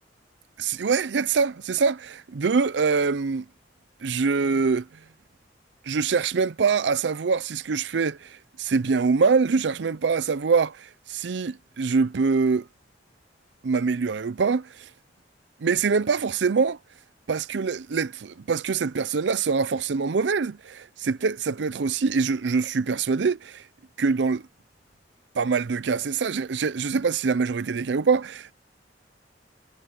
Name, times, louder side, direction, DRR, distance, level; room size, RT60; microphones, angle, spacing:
voice 1, 0.6-3.4 4.0-4.8 5.9-12.6 13.6-14.9 15.6-16.8 17.3-23.6 24.0-24.4 25.4-28.5, right 5 dB, 70° right, 0.5 m, -24 dB
head